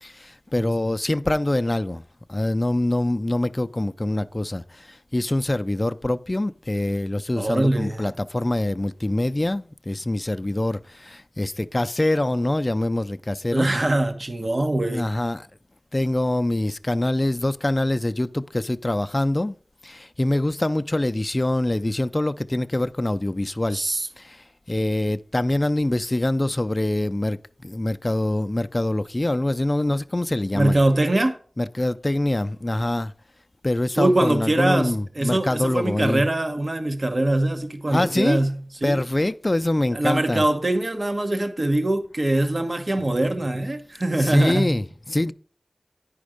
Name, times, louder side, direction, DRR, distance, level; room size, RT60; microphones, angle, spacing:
voice 1, 0.0-2.0 2.3-13.7 14.9-15.4 15.9-19.6 19.8-23.8 24.2-30.8 31.6-33.1 33.6-36.3 37.9-38.5 38.8-40.4 43.0-43.1 44.2-45.3, left 1 dB, 30° left, 0.4 m, -24 dB
voice 2, 7.4-8.0 13.5-15.0 23.7-24.1 30.5-31.4 34.0-39.0 39.9-44.8, right 1 dB, 50° right, 1.1 m, -23 dB
9.9 x 5.2 x 4.9 m
wide cardioid pair, 45°, 0 cm